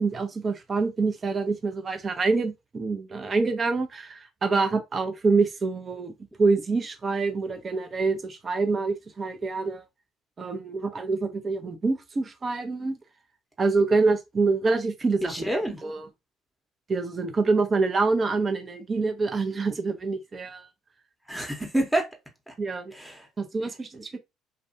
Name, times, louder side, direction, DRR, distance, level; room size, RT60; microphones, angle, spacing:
voice 1, 0.0-6.1 6.4-9.8 10.4-13.0 13.6-16.1 16.9-20.7 22.6-22.9 23.4-24.2, right 3 dB, 35° right, 0.6 m, -26 dB
voice 2, 15.2-15.8 21.3-22.1 22.5-22.6 22.9-23.3, right 1 dB, 5° right, 1.0 m, -28 dB
2.5 x 2.2 x 2.6 m
hypercardioid pair, 55°, 0 cm